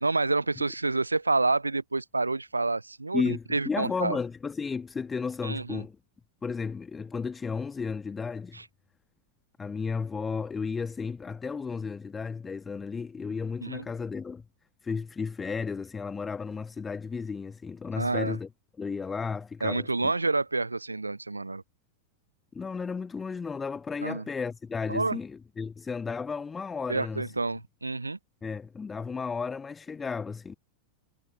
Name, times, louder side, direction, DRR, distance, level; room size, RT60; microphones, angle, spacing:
voice 1, 0.0-4.2 5.4-5.8 8.5-8.6 13.6-13.8 18.0-18.4 19.6-21.6 24.0-24.2 24.9-25.2 26.9-28.2, right 3 dB, 80° right, 0.4 m, -28 dB
voice 2, 3.1-6.0 6.4-8.6 9.6-14.4 14.8-18.5 18.8-20.1 22.5-27.3 28.4-30.6, left 5 dB, 15° left, 1.4 m, -33 dB
figure-of-eight pair, 90°, 0 cm